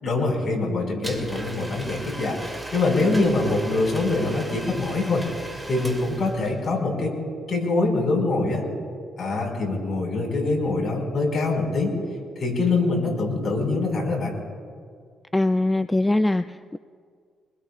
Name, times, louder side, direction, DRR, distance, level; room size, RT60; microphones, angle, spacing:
voice 1, 0.0-7.1 7.5-8.6 9.2-11.9 12.4-14.3, left 3 dB, 45° left, 0 dB, 5.4 m, -24 dB
Domestic sounds home sounds, 1.0-6.7, right 1 dB, 5° right, 2.6 m, -38 dB
voice 2, 15.3-16.8, left 2 dB, 10° left, 11 dB, 0.3 m, -22 dB
26.0 x 21.0 x 2.5 m, 2.1 s
cardioid pair, 90°, 0 cm